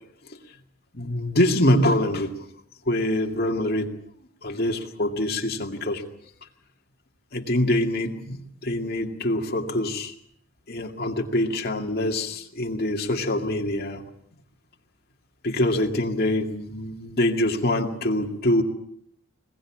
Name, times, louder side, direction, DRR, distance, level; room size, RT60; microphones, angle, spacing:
voice 1, 0.9-2.3 2.9-3.9 4.4-6.0 7.3-10.1 10.7-14.0 15.4-18.6, left 1 dB, 45° left, 2 dB, 2.3 m, -24 dB
21.5 x 21.0 x 7.4 m, 0.72 s
head